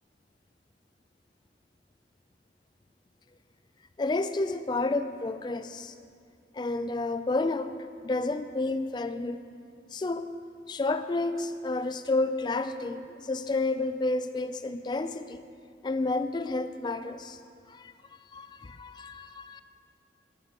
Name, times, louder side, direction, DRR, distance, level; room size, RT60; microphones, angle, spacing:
voice 1, 4.0-5.9 6.5-7.8 8.0-9.4 9.9-10.3 10.7-15.4 15.8-17.4 17.7-17.9 18.3-19.6, left 2 dB, 25° left, 10 dB, 0.3 m, -30 dB
12.0 x 11.0 x 3.0 m, 2.3 s
head